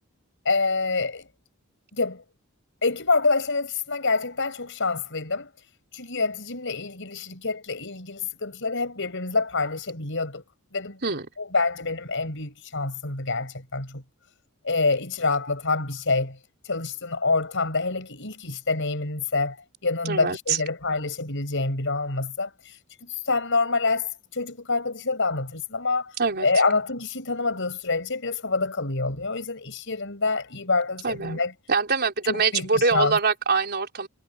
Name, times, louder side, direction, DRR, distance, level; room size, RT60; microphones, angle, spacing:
voice 1, 0.4-1.2 2.0-2.2 2.8-5.5 5.9-10.4 10.7-11.0 11.4-14.0 14.6-16.4 16.6-19.6 19.8-31.5 32.3-33.2, left 3 dB, 65° left, 6.8 m, -26 dB
voice 2, 20.0-20.6 26.2-26.5 31.0-31.4 31.7-34.1, right 4 dB, 50° right, 4.3 m, -24 dB
head